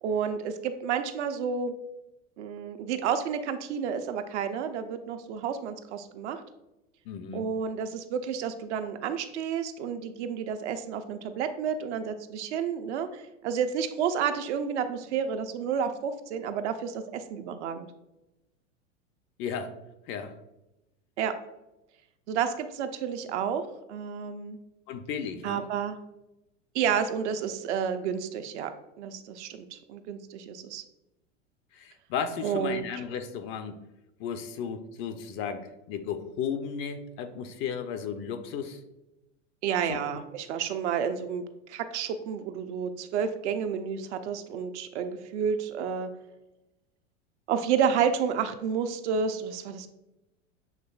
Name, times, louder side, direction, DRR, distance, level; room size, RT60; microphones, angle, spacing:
voice 1, 0.0-1.7 2.4-6.4 7.3-17.9 21.2-21.3 22.3-24.6 25.4-26.0 26.7-28.7 29.0-30.8 32.4-32.9 39.6-41.4 41.7-46.1 47.5-49.9, right 7 dB, 65° right, 8 dB, 0.6 m, -30 dB
voice 2, 7.1-7.4 19.4-19.8 20.1-20.4 24.9-25.6 31.7-33.8 34.2-38.8 39.8-40.0, left 7 dB, 35° left, 9 dB, 0.4 m, -34 dB
7.2 x 3.1 x 2.3 m, 0.94 s
hypercardioid pair, 95°, 38 cm